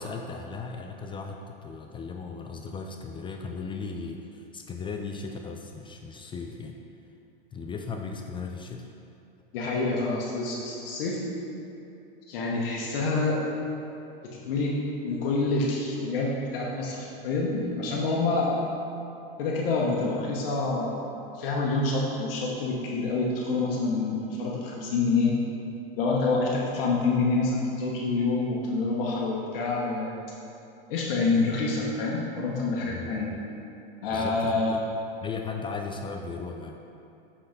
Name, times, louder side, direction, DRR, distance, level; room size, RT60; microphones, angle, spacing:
voice 1, 0.0-6.8 7.5-8.8 32.8-33.4 34.1-34.8 35.2-36.8, left 4 dB, 15° left, 3 dB, 0.4 m, -37 dB
voice 2, 9.5-11.2 12.3-13.4 14.2-18.6 19.4-21.1 21.3-25.4 26.0-30.2 30.9-33.3 34.0-34.8, left 3 dB, 70° left, -3 dB, 1.2 m, -27 dB
7.9 x 4.2 x 5.2 m, 2.7 s
hypercardioid pair, 110°, 30 cm